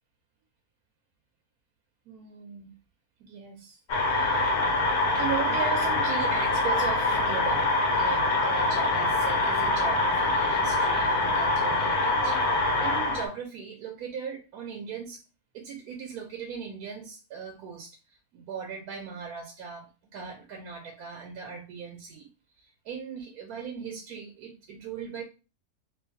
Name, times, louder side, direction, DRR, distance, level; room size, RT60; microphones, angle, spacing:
voice 1, 2.1-2.8 3.2-3.8 4.0-4.5 5.1-7.7 8.0-15.2 15.5-22.3 22.6-25.2, right 6 dB, 85° right, 2 dB, 1.1 m, -38 dB
sound 1, 3.9-13.3, left 2 dB, 90° left, 1.3 m, -25 dB
3.1 x 2.5 x 2.6 m, 0.32 s
omnidirectional pair, 1.6 m